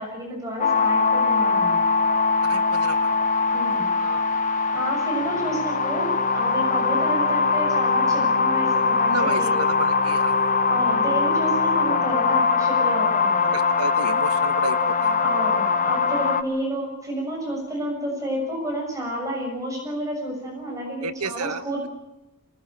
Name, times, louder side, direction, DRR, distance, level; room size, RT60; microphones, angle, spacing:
voice 1, 0.0-1.8 3.5-3.8 4.7-9.5 10.7-13.5 15.2-21.9, right 1 dB, 15° right, 0 dB, 6.7 m, -30 dB
sound 1, 0.6-16.4, left 4 dB, 35° left, 1.3 m, -21 dB
voice 2, 2.4-3.2 3.7-4.5 9.0-10.6 13.5-15.3 21.0-21.6, right 4 dB, 85° right, 10 dB, 1.4 m, -32 dB
24.5 x 19.5 x 8.8 m, 0.95 s
head